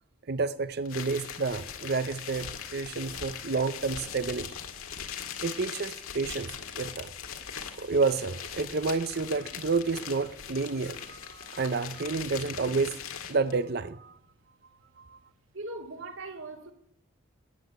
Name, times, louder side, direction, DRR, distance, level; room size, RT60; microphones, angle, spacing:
voice 1, 0.3-4.5 5.4-7.1 7.8-13.0 13.3-14.2 15.0-15.2, right 4 dB, 45° right, 0.6 m, -30 dB
sound 1, 0.8-13.5, left 7 dB, 75° left, 2.0 m, -40 dB
voice 2, 15.5-16.7, right 2 dB, 65° right, 2.7 m, -39 dB
14.5 x 10.0 x 9.5 m
head